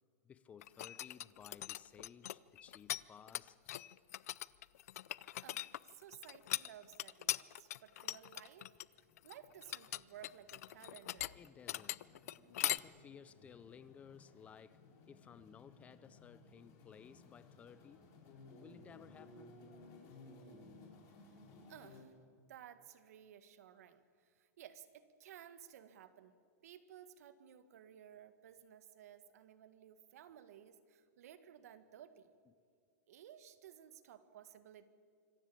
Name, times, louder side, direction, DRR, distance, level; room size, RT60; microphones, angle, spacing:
voice 1, 0.2-3.6 11.3-12.1 12.5-18.1 18.5-19.6, left 7 dB, 15° left, 0.5 m, -58 dB
sound 1, 0.6-3.0 3.3-12.8, left 14 dB, 65° left, 0.5 m, -41 dB
voice 2, 5.2-8.7 9.0-11.4 21.7-22.1 22.5-32.3 33.1-34.9, right 10 dB, 70° right, 1.7 m, -57 dB
sound 2, 8.7-22.0, left 2 dB, 35° left, 4.2 m, -60 dB
26.0 x 15.0 x 8.7 m
supercardioid pair, 160°, 9 cm